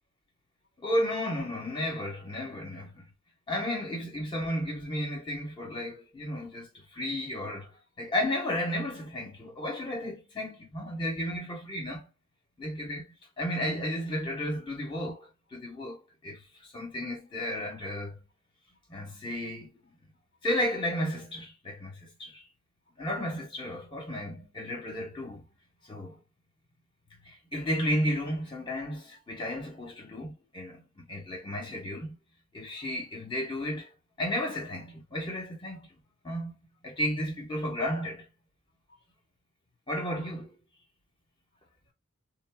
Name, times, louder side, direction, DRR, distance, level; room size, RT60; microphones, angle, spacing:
voice 1, 0.8-3.0 3.5-12.1 12.6-13.0 13.4-16.4 16.7-18.2 18.9-19.8 20.4-22.4 23.0-25.4 25.9-26.2 27.2-32.2 32.5-33.9 34.2-35.9 36.2-36.6 36.8-38.2 39.9-40.5, equal, 25° left, 1.2 m, -33 dB
3.9 x 2.0 x 2.3 m
head